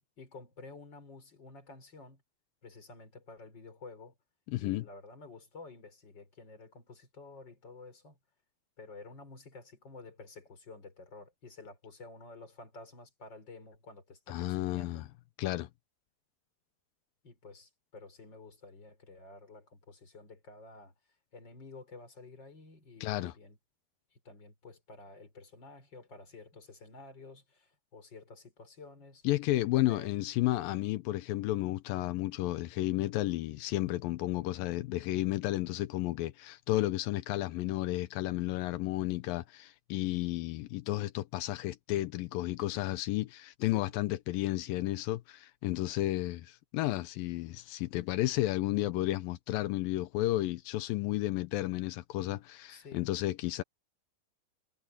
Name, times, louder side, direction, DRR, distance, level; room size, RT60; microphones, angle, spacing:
voice 1, 0.0-2.2 2.6-4.1 4.6-8.2 8.8-15.0 17.2-20.9 21.3-23.6 24.1-29.2 29.9-30.1 43.7-43.9 52.7-53.1, left 3 dB, 25° left, 5.2 m, -51 dB
voice 2, 4.5-4.8 14.3-15.1 15.4-15.7 23.0-23.3 29.2-53.6, left 16 dB, 85° left, 2.0 m, -32 dB
omnidirectional pair, 5.1 m